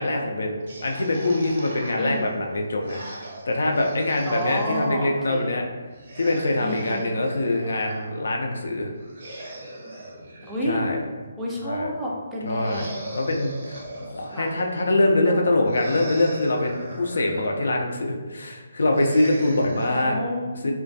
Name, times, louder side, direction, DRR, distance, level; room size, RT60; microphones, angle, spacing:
voice 1, 0.0-5.7 6.2-8.9 10.7-11.0 11.6-11.9 12.4-12.9 13.1-20.1 20.6-20.7, left 2 dB, 65° left, 1 dB, 0.3 m, -24 dB
sound 1, 0.6-4.9 5.9-8.1 9.0-11.3 12.5-14.7 15.7-17.8 18.9-20.0, right 1 dB, 50° right, 0.6 m, -40 dB
voice 2, 2.0-2.3 4.3-5.5 6.6-7.1 10.4-10.9 11.4-12.9 14.3-14.5 15.2-15.5 19.9-20.7, equal, 5° right, -6 dB, 0.4 m, -30 dB
2.2 x 2.2 x 2.6 m, 1.3 s
figure-of-eight pair, 145°, 0 cm